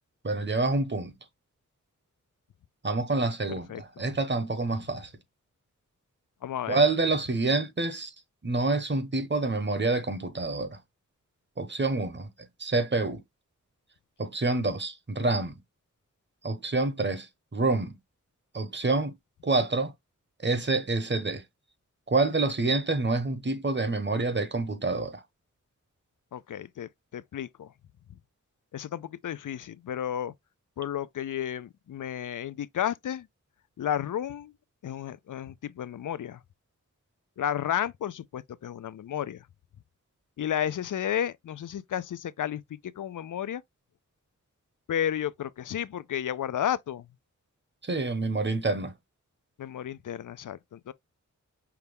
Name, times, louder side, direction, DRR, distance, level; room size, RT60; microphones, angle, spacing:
voice 1, 0.2-1.1 2.8-5.1 6.7-8.1 8.4-10.8 11.6-12.3 12.6-13.2 14.2-15.5 16.4-18.0 18.5-19.1 19.4-19.9 20.4-21.4 22.1-25.2 47.8-48.9, right 3 dB, 35° right, 1.1 m, -27 dB
voice 2, 6.4-6.8 26.3-27.7 28.7-30.3 30.8-33.3 33.8-34.5 34.8-36.4 37.4-39.4 40.4-42.6 43.0-43.6 44.9-47.1 49.6-50.9, left 10 dB, 85° left, 0.5 m, -32 dB
5.8 x 2.2 x 3.4 m
wide cardioid pair, 75°, 31 cm